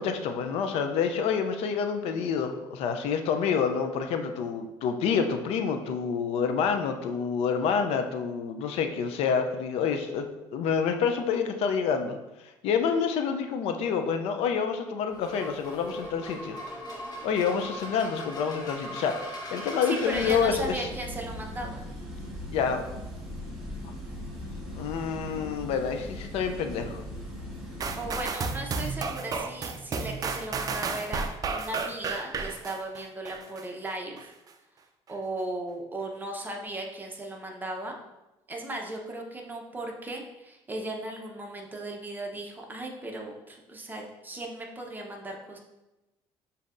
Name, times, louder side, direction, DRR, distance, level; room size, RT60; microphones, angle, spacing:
voice 1, 0.0-10.3 10.5-12.2 12.6-16.6 17.2-19.1 19.5-20.9 22.5-22.8 24.7-27.0, left 6 dB, 75° left, 6 dB, 0.4 m, -28 dB
sound 1, 15.1-20.4, equal, 40° left, 1.3 m, -39 dB
voice 2, 19.8-21.8 27.9-34.3 35.1-37.9 38.5-45.6, right 1 dB, 15° right, 0 dB, 0.8 m, -36 dB
sound 2, 20.1-28.3, left 1 dB, ahead, 1.6 m, -39 dB
sound 3, 27.8-33.6 34.2-34.3, right 4 dB, 35° right, 0.4 m, -32 dB
7.0 x 2.7 x 2.5 m, 1.0 s
cardioid pair, 105°, 10 cm